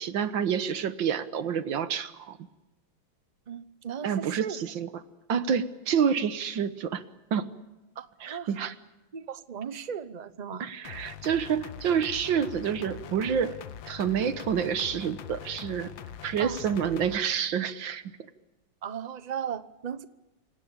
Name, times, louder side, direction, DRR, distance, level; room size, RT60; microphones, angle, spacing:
voice 1, 0.0-2.4 4.0-4.9 5.3-7.0 7.3-7.5 8.2-8.7 10.6-13.6 13.9-15.9 16.2-18.0, right 7 dB, 75° right, 13 dB, 1.8 m, -28 dB
voice 2, 3.5-4.6 8.0-8.5 9.1-10.7 16.4-16.6 18.8-20.1, right 8 dB, 40° right, 14 dB, 0.6 m, -36 dB
sound 1, 10.8-17.2, left 10 dB, 75° left, 1.8 m, -43 dB
28.5 x 18.0 x 8.7 m, 1.0 s
omnidirectional pair, 2.1 m